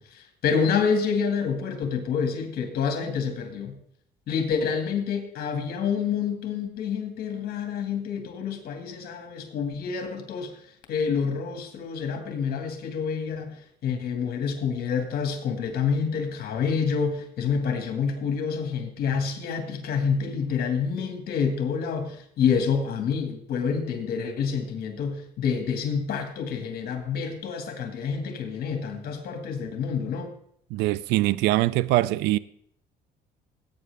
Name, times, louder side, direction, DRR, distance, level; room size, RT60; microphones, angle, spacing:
voice 1, 0.0-3.8 4.3-10.6 10.9-30.3, left 6 dB, 65° left, 2.1 m, -28 dB
voice 2, 30.7-32.4, right 17 dB, 85° right, 0.4 m, -23 dB
17.5 x 8.7 x 3.5 m
cardioid pair, 110°, 17 cm